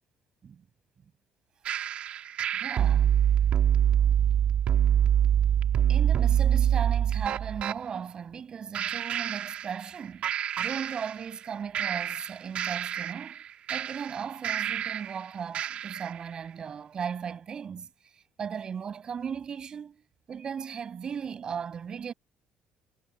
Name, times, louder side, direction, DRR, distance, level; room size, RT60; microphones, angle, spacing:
sound 1, 1.7-7.8 8.7-10.0 10.2-11.4 11.7-15.2 15.5-16.2, right 9 dB, 45° right, 2.1 m, -26 dB
voice 1, 2.5-3.1 5.9-10.3 10.6-13.4 13.7-20.0 20.3-22.1, right 7 dB, 30° right, 7.4 m, -37 dB
cardioid pair, 170°, 3 cm